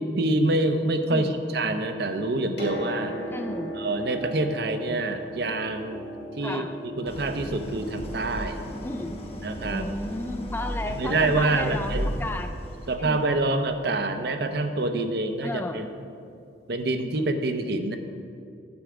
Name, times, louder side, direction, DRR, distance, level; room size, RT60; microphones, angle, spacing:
voice 1, 0.0-3.2 3.8-6.0 6.4-8.6 9.4-9.9 10.9-12.1 12.9-15.9 16.7-18.0, right 2 dB, 60° right, 7 dB, 0.7 m, -26 dB
Piano, 2.4-16.1 17.2-17.3, equal, 60° left, 2.0 m, -40 dB
voice 2, 3.3-3.8 6.4-6.8 8.8-9.3 9.6-12.5 13.0-13.3 15.4-15.9, left 2 dB, 10° left, 7 dB, 0.3 m, -33 dB
Idling, 7.1-13.1, equal, 35° left, 1.1 m, -35 dB
10.5 x 8.1 x 5.0 m, 2.5 s
head